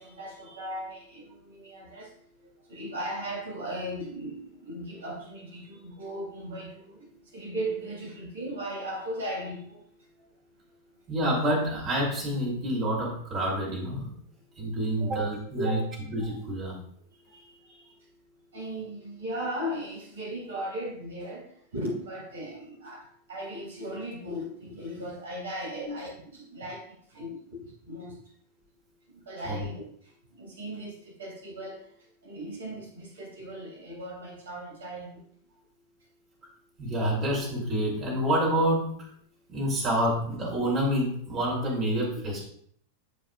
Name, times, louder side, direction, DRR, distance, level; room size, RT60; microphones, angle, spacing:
voice 1, 0.0-2.1 2.7-9.8 15.6-15.8 17.3-17.9 18.5-26.8 27.1-28.1 29.1-29.8 30.3-31.9 32.2-35.2, right 1 dB, 65° right, -2 dB, 3.1 m, -37 dB
voice 2, 11.1-14.1 14.6-15.8 16.1-16.7 25.7-25.8 29.4-29.6 36.8-39.0 39.5-42.4, right 1 dB, 35° right, -4 dB, 3.0 m, -28 dB
12.0 x 4.9 x 2.4 m, 0.63 s
figure-of-eight pair, 90°, 0 cm